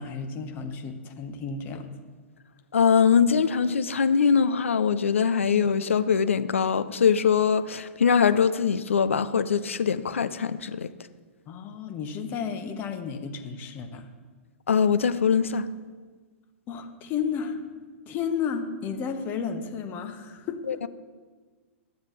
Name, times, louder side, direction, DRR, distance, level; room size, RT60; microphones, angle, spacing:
voice 1, 0.0-1.9 11.5-14.1 16.7-17.6 18.1-20.6, left 6 dB, 25° left, 6 dB, 0.8 m, -32 dB
voice 2, 2.7-10.9 14.7-15.7 20.7-20.9, left 6 dB, 70° left, 13 dB, 0.4 m, -22 dB
11.0 x 7.3 x 3.1 m, 1.4 s
figure-of-eight pair, 110°, 7 cm